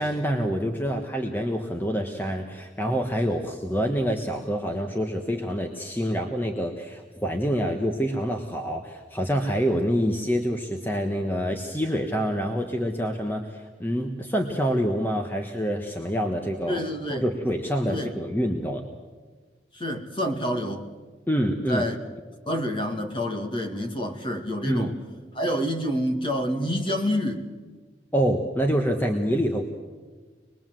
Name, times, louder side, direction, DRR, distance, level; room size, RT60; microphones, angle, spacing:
voice 1, 0.0-16.8 17.1-18.8 21.3-21.8 24.6-24.9 28.1-29.7, equal, 10° left, 1.3 m, -26 dB
voice 2, 16.6-17.2 17.9-18.1 19.7-20.8 21.7-22.0 22.5-24.9 25.3-27.4, equal, 25° left, 2.1 m, -28 dB
26.0 x 21.0 x 7.7 m
head